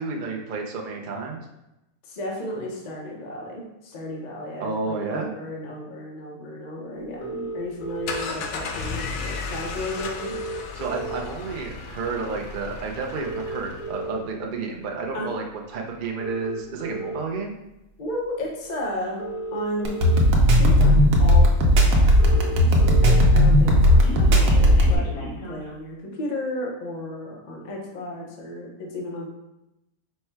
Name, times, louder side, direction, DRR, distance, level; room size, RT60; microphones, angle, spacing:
voice 1, 0.0-1.4 4.6-5.3 10.7-17.5, right 4 dB, 65° right, 1 dB, 0.5 m, -31 dB
voice 2, 2.1-10.4 15.1-15.3 18.0-19.2 19.5-20.0 20.6-21.5 21.8-29.3, left 1 dB, 40° left, -2 dB, 0.7 m, -33 dB
sound 1, 7.2-8.2 9.4-9.5 9.7-9.8 10.0-11.5 12.0-12.2 13.0-14.2 14.9-15.1 16.0-17.2 18.4-18.5 19.0-20.2 20.9-21.0 21.3-21.4 21.6-21.7 21.9-23.2 23.5-25.7, right 2 dB, 65° left, 1.2 m, -34 dB
sound 2, 7.8-14.1, left 4 dB, 90° left, 1.1 m, -35 dB
sound 3, 19.8-25.0, equal, 85° right, 1.2 m, -16 dB
4.4 x 2.2 x 4.4 m, 0.91 s
omnidirectional pair, 1.6 m